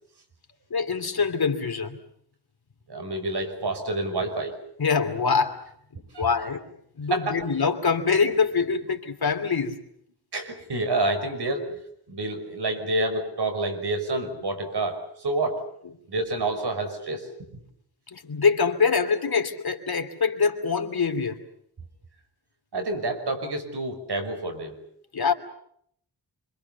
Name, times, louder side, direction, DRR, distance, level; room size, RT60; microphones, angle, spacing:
voice 1, 0.7-2.0 4.8-5.6 6.2-6.7 7.0-9.8 18.1-21.4 25.1-25.3, left 5 dB, 60° left, 5 dB, 2.9 m, -24 dB
voice 2, 2.9-4.6 6.1-6.3 7.1-7.4 10.3-11.8 12.1-15.6 16.1-17.3 22.7-24.8, right 2 dB, 65° right, 6 dB, 5.7 m, -28 dB
27.0 x 25.5 x 7.0 m, 0.68 s
wide cardioid pair, 105°, 42 cm